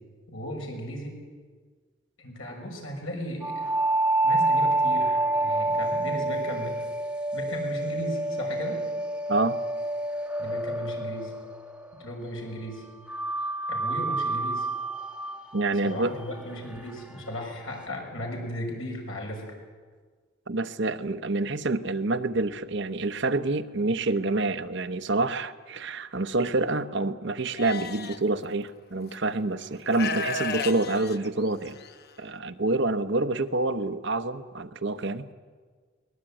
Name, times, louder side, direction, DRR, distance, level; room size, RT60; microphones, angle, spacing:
voice 1, 0.3-1.2 2.2-3.7 4.2-6.7 7.3-8.8 10.4-11.3 12.0-12.8 13.7-14.7 15.8-19.5, equal, 70° left, 1 dB, 6.3 m, -36 dB
sound 1, 3.4-12.2 13.1-17.9, right 2 dB, 5° right, 1.1 m, -28 dB
voice 2, 15.5-16.1 20.5-31.8 32.2-35.3, right 2 dB, 55° right, 10 dB, 1.0 m, -27 dB
Livestock farm animals working animals, 27.6-28.2 29.1-29.2 29.9-31.9, left 4 dB, 50° left, 0.9 m, -33 dB
22.5 x 20.0 x 9.0 m, 1.5 s
head